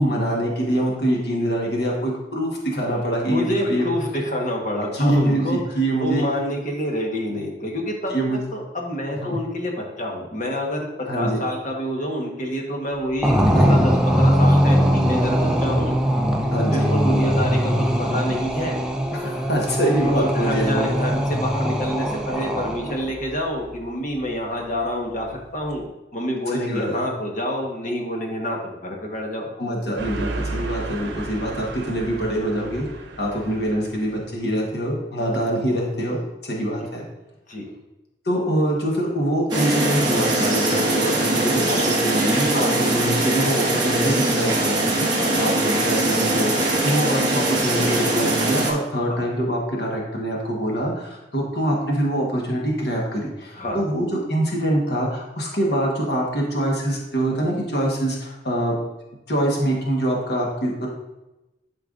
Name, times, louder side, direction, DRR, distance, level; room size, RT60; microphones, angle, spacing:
voice 1, 0.0-4.0 4.9-6.2 8.1-8.4 9.2-9.4 11.1-11.4 13.5-13.9 16.5-16.9 19.1-21.0 26.5-27.1 29.6-32.9 33.2-37.0 38.2-45.1 45.4-58.8 59.3-60.9, right 1 dB, 65° left, -2 dB, 1.3 m, -24 dB
voice 2, 3.3-5.6 6.0-8.2 8.5-9.7 10.0-10.9 11.1-15.9 16.4-18.8 20.1-25.9 26.1-29.5 37.5-37.7 45.2-45.4 49.1-49.2 53.6-53.8, equal, 45° left, 0 dB, 1.2 m, -27 dB
sound 1, 13.2-23.1, equal, 5° right, 0.5 m, -21 dB
sound 2, 30.0-34.1, right 2 dB, 70° right, 1.0 m, -33 dB
sound 3, 39.5-48.7, right 2 dB, 25° right, 1.3 m, -21 dB
11.5 x 4.6 x 2.5 m, 1.0 s
head